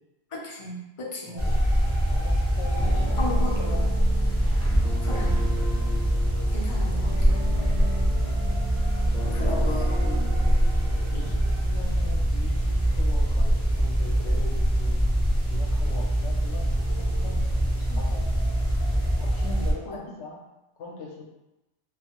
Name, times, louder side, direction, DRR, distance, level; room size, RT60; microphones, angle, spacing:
voice 1, 0.3-1.4 3.2-3.5 5.0-5.4 6.5-7.3 9.3-10.2 17.9-18.0 19.9-20.0, left 1 dB, 40° left, -3 dB, 0.5 m, -35 dB
voice 2, 1.3-3.8 4.4-4.6 7.9-8.2 9.1-9.7 11.1-15.1 15.5-17.5 17.9-18.3 19.2-20.4 20.8-21.2, left 3 dB, 75° left, -1 dB, 0.9 m, -41 dB
sound 1, 1.4-19.7, equal, 20° right, 0.4 m, -24 dB
sound 2, 2.8-11.3, right 1 dB, 70° right, 0.8 m, -38 dB
2.6 x 2.3 x 2.9 m, 0.97 s
omnidirectional pair, 1.2 m